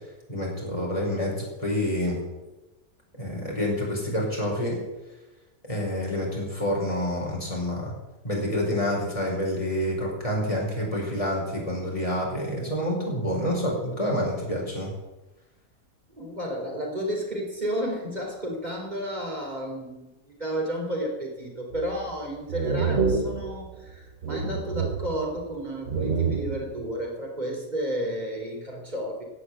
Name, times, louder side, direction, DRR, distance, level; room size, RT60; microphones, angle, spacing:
voice 1, 0.3-2.2 3.2-4.8 5.7-7.9 8.2-14.9, equal, 20° left, -3 dB, 5.2 m, -28 dB
voice 2, 16.2-29.2, equal, 30° right, -1 dB, 3.9 m, -32 dB
sound 1, 21.7-22.1 22.5-24.0 24.2-25.5 25.9-26.9, right 5 dB, 45° right, 1.3 m, -28 dB
17.0 x 8.3 x 8.0 m, 1.1 s
omnidirectional pair, 1.6 m